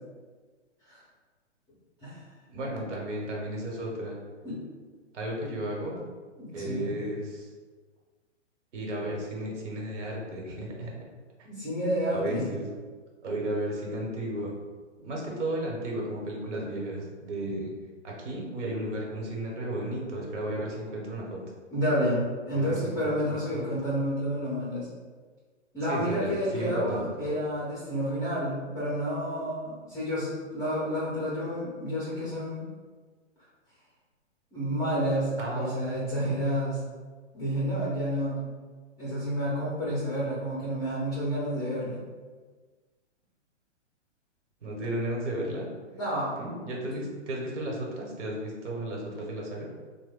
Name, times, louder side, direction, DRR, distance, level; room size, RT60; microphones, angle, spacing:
voice 1, 2.5-4.2 5.1-6.0 6.5-7.5 8.7-10.9 11.4-11.6 12.1-12.7 13.2-14.5 15.0-17.7 18.0-21.4 22.5-24.0 25.8-27.4 35.4-36.3 44.6-45.7 46.4-49.7, right 1 dB, 75° right, -1 dB, 1.2 m, -34 dB
voice 2, 6.4-6.9 11.6-12.5 21.7-24.9 25.7-32.7 34.5-36.8 37.3-38.4 39.0-42.0 45.9-46.3 46.9-47.0, equal, 10° left, -9 dB, 0.5 m, -30 dB
3.1 x 2.2 x 3.6 m, 1.4 s
hypercardioid pair, 140°, 36 cm